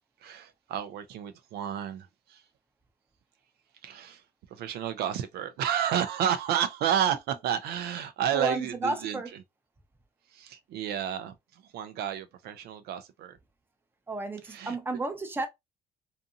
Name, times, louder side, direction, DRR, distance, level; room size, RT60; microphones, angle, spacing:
voice 1, 0.2-2.4 3.8-4.2 4.5-9.2 10.3-13.4 14.4-14.8, right 9 dB, 70° right, 0.4 m, -31 dB
voice 2, 8.3-9.3 14.1-15.5, right 3 dB, 10° right, 0.6 m, -32 dB
2.6 x 2.6 x 2.5 m
cardioid pair, 110°, 17 cm